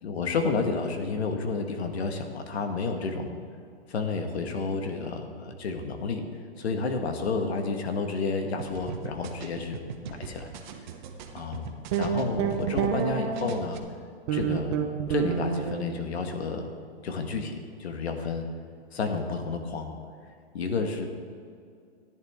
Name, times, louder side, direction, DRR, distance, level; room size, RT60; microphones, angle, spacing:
voice 1, 0.0-3.4 3.9-6.2 6.6-10.5 11.3-13.8 14.3-14.8 15.1-16.7 17.0-18.5 18.9-19.9 20.5-21.1, left 4 dB, 75° left, 5 dB, 1.6 m, -31 dB
sound 1, 8.6-13.1 13.4-13.8, right 7 dB, 45° right, 1.0 m, -40 dB
sound 2, 11.9-13.7 14.3-15.8, right 7 dB, 25° right, 0.7 m, -28 dB
14.5 x 10.5 x 3.6 m, 2.3 s
hypercardioid pair, 165°, 33 cm